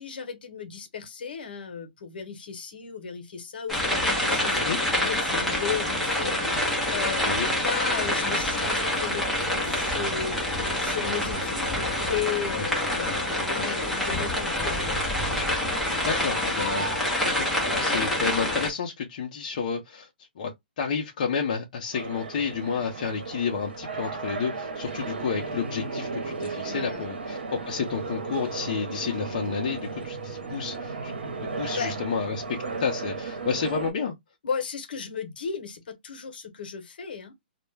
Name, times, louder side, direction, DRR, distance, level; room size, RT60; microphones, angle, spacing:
voice 1, 0.0-7.3 7.6-15.1 26.6-27.1 31.7-31.9 34.4-37.3, left 7 dB, 65° left, 0.9 m, -35 dB
sound 1, 3.7-18.7, left 1 dB, ahead, 0.6 m, -26 dB
voice 2, 16.0-20.1 20.4-20.5 20.8-31.1 31.4-34.1, left 6 dB, 45° left, 0.5 m, -31 dB
sound 2, 21.9-33.9, right 4 dB, 90° right, 0.8 m, -35 dB
2.2 x 2.0 x 3.2 m
hypercardioid pair, 165°, 6 cm